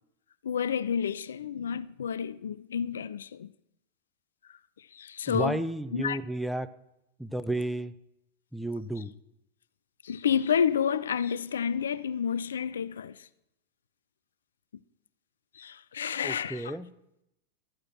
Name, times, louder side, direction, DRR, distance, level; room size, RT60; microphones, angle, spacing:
voice 1, 0.4-3.5 4.9-5.6 5.9-6.2 10.0-13.2 15.6-16.7, left 7 dB, 65° left, 0.4 m, -30 dB
voice 2, 5.3-6.7 7.2-8.0 8.5-9.1 16.2-16.9, right 1 dB, ahead, 0.6 m, -32 dB
13.5 x 9.6 x 6.1 m
figure-of-eight pair, 90°, 0 cm